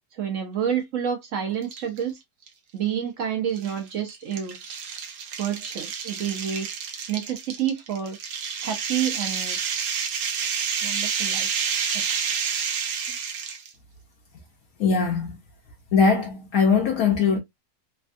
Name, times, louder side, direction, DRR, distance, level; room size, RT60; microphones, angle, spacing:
voice 1, 0.1-2.2 2.7-4.6 5.4-6.7 7.1-8.2 8.6-9.6 10.8-11.5 11.9-12.0, right 9 dB, 65° right, 0.9 m, -29 dB
sound 1, 1.6-2.0 2.5-2.6 3.6-13.7, right 6 dB, 85° right, 1.2 m, -29 dB
voice 2, 14.8-15.4 15.9-17.4, left 5 dB, 70° left, 1.1 m, -21 dB
3.3 x 2.3 x 2.5 m
omnidirectional pair, 1.7 m